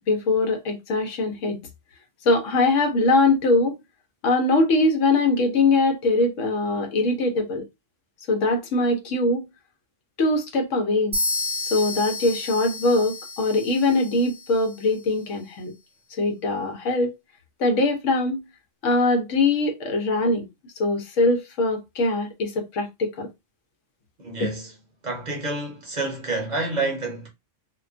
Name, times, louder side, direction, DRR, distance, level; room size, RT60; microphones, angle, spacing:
voice 1, 0.1-1.6 2.2-3.8 4.2-7.6 8.3-9.5 10.2-11.2 11.7-15.7 16.2-17.2 17.6-18.5 18.8-20.4 20.8-23.3, left 2 dB, 90° left, 1.1 m, -22 dB
sound 1, 11.1-14.9, left 2 dB, 10° right, 0.7 m, -31 dB
voice 2, 24.2-24.7 25.0-27.3, right 2 dB, 45° right, 0.8 m, -28 dB
2.5 x 2.2 x 2.4 m
omnidirectional pair, 1.2 m